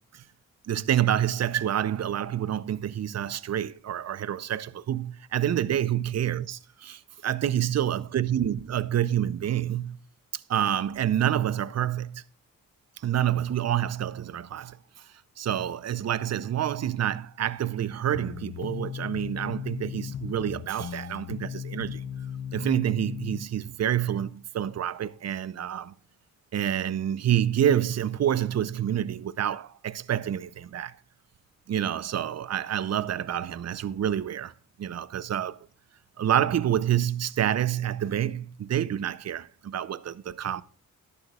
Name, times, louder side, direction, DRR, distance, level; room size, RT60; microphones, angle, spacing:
voice 1, 0.7-10.0 10.3-12.2 13.0-14.8 15.4-22.0 22.5-25.9 26.5-30.9 31.7-34.5 34.8-35.6 36.2-40.6, right 10 dB, 50° right, 0.6 m, -28 dB
sound 1, 18.1-23.4, left 8 dB, 50° left, 0.7 m, -37 dB
13.0 x 11.5 x 2.3 m
cardioid pair, 60°, 33 cm